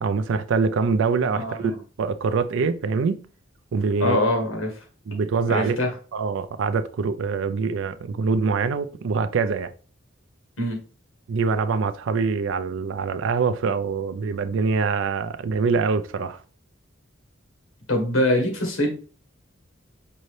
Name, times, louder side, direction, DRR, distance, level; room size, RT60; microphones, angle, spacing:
voice 1, 0.0-3.2 3.7-4.2 5.1-5.8 6.1-9.7 11.3-16.4, right 5 dB, 70° right, 0.4 m, -24 dB
voice 2, 1.3-1.7 4.0-4.7 5.5-5.9 10.6-10.8 17.9-18.9, left 1 dB, 75° left, 1.3 m, -23 dB
5.2 x 2.7 x 3.2 m
head